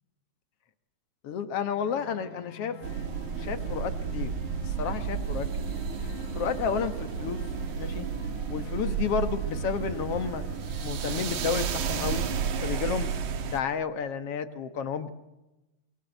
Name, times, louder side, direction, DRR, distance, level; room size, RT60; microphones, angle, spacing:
voice 1, 1.2-2.8 3.4-4.3 4.6-5.8 6.4-7.4 7.8-8.1 8.5-10.4 10.8-12.2 12.6-13.1 13.5-15.1, left 7 dB, 60° left, 10 dB, 2.2 m, -31 dB
sound 1, 1.7-13.6, left 11 dB, 80° left, 2.5 m, -47 dB
sound 2, 2.8-13.6, right 7 dB, 80° right, 3.0 m, -32 dB
26.0 x 22.5 x 8.0 m, 1.0 s
omnidirectional pair, 3.4 m